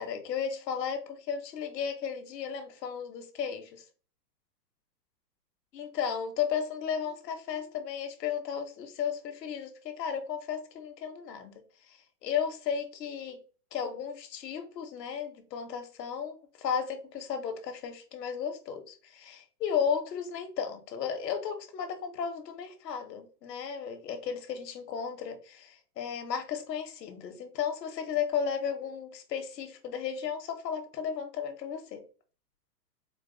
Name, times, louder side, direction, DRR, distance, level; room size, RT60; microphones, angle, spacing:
voice 1, 0.0-3.8 5.7-11.5 11.9-13.4 13.7-32.0, left 7 dB, 75° left, 1.1 m, -34 dB
4.4 x 2.2 x 3.8 m
supercardioid pair, 175°, 49 cm